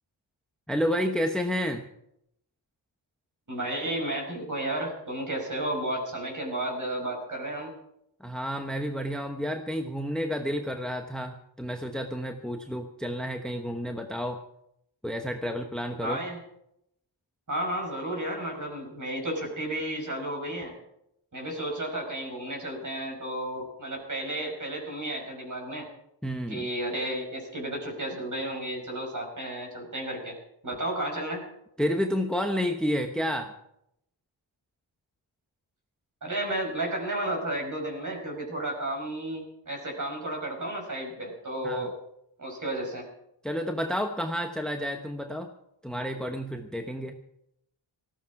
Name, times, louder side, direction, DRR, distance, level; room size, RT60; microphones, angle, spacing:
voice 1, 0.7-1.9 8.2-14.4 15.0-16.2 26.2-26.7 31.8-33.5 41.6-41.9 43.4-45.5 45.8-47.2, equal, ahead, 4 dB, 1.0 m, -30 dB
voice 2, 3.5-7.7 16.0-16.4 17.5-20.7 21.3-25.9 26.5-30.4 30.6-31.5 36.2-41.9 42.4-43.1, right 1 dB, 40° right, 1 dB, 5.7 m, -32 dB
19.0 x 14.5 x 4.8 m, 0.79 s
wide cardioid pair, 130°, 46 cm